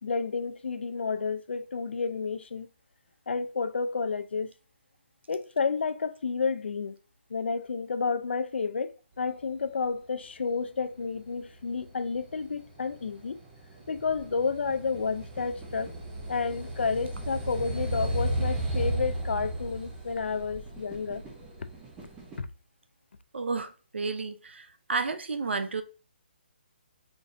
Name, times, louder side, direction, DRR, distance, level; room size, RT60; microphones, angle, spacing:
voice 1, 0.0-2.7 3.3-4.5 5.3-7.0 7.3-8.9 9.2-13.4 13.9-15.9 16.3-21.2 22.4-22.5, left 5 dB, 80° left, 0.4 m, -30 dB
sound 1, 11.0-22.4, right 1 dB, 5° right, 0.5 m, -35 dB
voice 2, 23.3-25.8, right 4 dB, 90° right, 0.6 m, -32 dB
3.9 x 3.3 x 2.5 m
hypercardioid pair, 175°, 6 cm